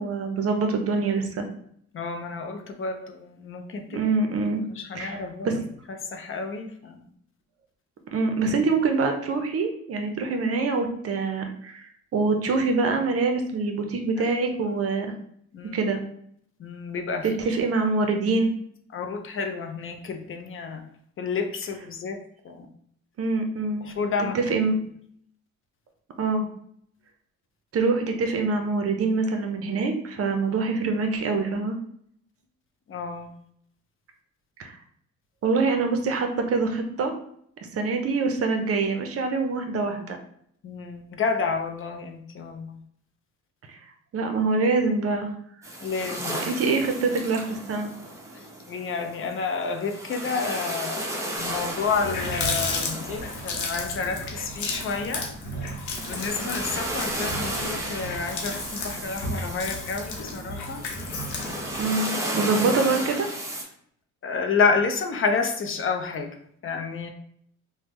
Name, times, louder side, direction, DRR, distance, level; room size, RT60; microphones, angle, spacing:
voice 1, 0.0-1.5 3.9-4.6 4.9-5.2 5.4-5.6 8.1-15.1 15.7-16.0 17.4-18.5 23.2-23.9 24.3-24.8 26.2-26.5 27.7-31.8 34.6-34.7 35.4-37.1 37.7-40.2 43.7-43.8 44.1-45.3 46.5-47.9 61.8-63.3, right 3 dB, 50° right, 5 dB, 0.6 m, -25 dB
voice 2, 1.9-4.1 4.7-5.5 5.9-7.0 14.2-14.3 15.5-15.8 16.6-17.4 18.9-20.9 21.2-22.2 22.4-22.7 23.8-24.4 32.9-33.3 40.6-42.8 45.8-46.5 48.3-55.3 56.1-60.8 64.2-66.4 66.6-67.1, left 5 dB, 45° left, 5 dB, 0.5 m, -30 dB
sound 1, 45.6-63.6, right 1 dB, 10° right, 0.8 m, -34 dB
Water tap faucet, 51.5-51.6 51.8-61.9, left 2 dB, 75° left, 0.8 m, -33 dB
3.4 x 2.1 x 3.0 m, 0.66 s
cardioid pair, 90°, 30 cm